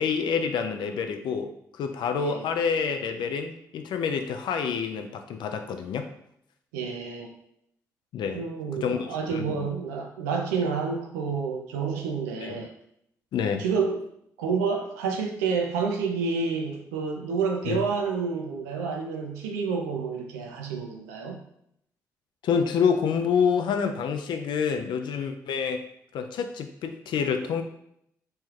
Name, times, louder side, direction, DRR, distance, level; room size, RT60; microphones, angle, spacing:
voice 1, 0.0-6.1 8.1-8.4 8.8-9.7 12.4-12.7 13.3-13.6 17.7-17.8 22.4-25.8 26.1-27.6, left 6 dB, 65° left, 6 dB, 0.4 m, -27 dB
voice 2, 6.7-7.3 8.3-12.7 13.6-14.0 14.4-21.4, right 5 dB, 90° right, 3 dB, 0.4 m, -29 dB
3.1 x 2.3 x 3.1 m, 0.74 s
hypercardioid pair, 45°, 8 cm